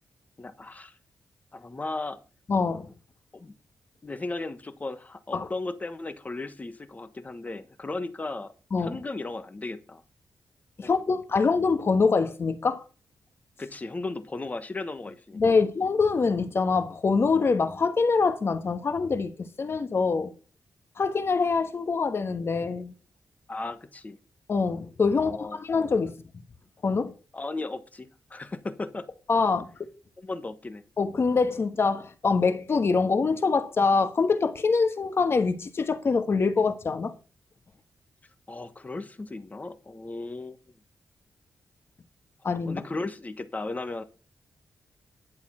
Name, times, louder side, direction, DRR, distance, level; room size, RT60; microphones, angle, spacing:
voice 1, 0.4-0.9 1.5-2.2 3.3-3.5 4.0-8.5 8.8-10.0 10.8-10.9 13.6-15.4 23.5-24.2 25.2-25.6 27.3-29.1 30.2-30.8 38.5-40.6 42.6-44.0, left 2 dB, 25° left, 1.3 m, -36 dB
voice 2, 2.5-2.9 5.3-5.5 8.7-9.0 10.8-12.8 15.3-20.3 21.0-22.9 24.5-26.1 26.8-27.1 29.3-29.9 31.0-37.1 42.4-42.8, left 4 dB, 45° left, 1.4 m, -24 dB
11.0 x 7.1 x 5.7 m
cardioid pair, 100°, 6 cm